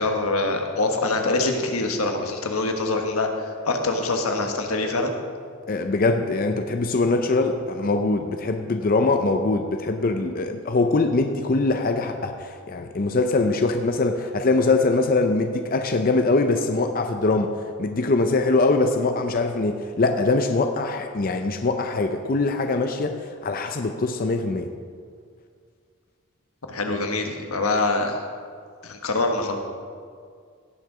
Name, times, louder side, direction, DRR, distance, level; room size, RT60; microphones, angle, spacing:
voice 1, 0.0-5.1 26.7-28.2 28.8-29.6, left 2 dB, 90° left, 4 dB, 1.4 m, -24 dB
voice 2, 5.7-17.5 17.8-24.7, left 3 dB, 40° left, 6 dB, 0.5 m, -22 dB
17.0 x 6.5 x 4.9 m, 2.1 s
head